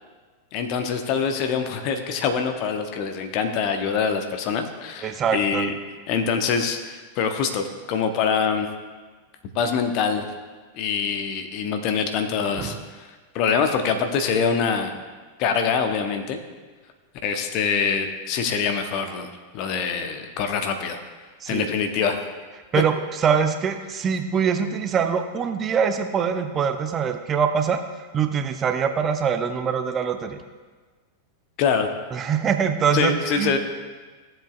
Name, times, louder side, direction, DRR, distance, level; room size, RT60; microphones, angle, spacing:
voice 1, 0.5-5.7 6.1-8.7 9.5-10.3 10.7-13.1 13.3-15.0 15.4-16.4 17.2-19.3 19.5-21.0 21.5-22.2 31.6-31.9 32.9-33.6, left 6 dB, 40° left, 6 dB, 0.9 m, -24 dB
voice 2, 5.0-5.7 12.6-12.8 21.4-21.7 22.7-27.8 28.1-30.4 32.1-33.6, right 7 dB, 25° right, 7 dB, 0.6 m, -23 dB
14.5 x 7.6 x 2.4 m, 1.4 s
figure-of-eight pair, 90°, 0 cm